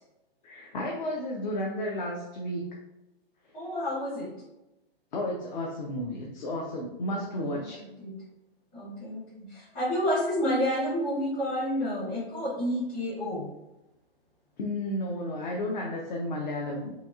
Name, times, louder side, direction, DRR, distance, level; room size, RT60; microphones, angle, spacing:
voice 1, 0.4-2.8 5.1-7.8 14.6-16.9, left 1 dB, 50° left, -1 dB, 0.5 m, -32 dB
voice 2, 3.5-4.3 7.5-7.6 8.0-8.2 8.7-13.5, equal, 20° left, -14 dB, 0.8 m, -30 dB
2.9 x 2.7 x 2.3 m, 0.97 s
hypercardioid pair, 170°, 30 cm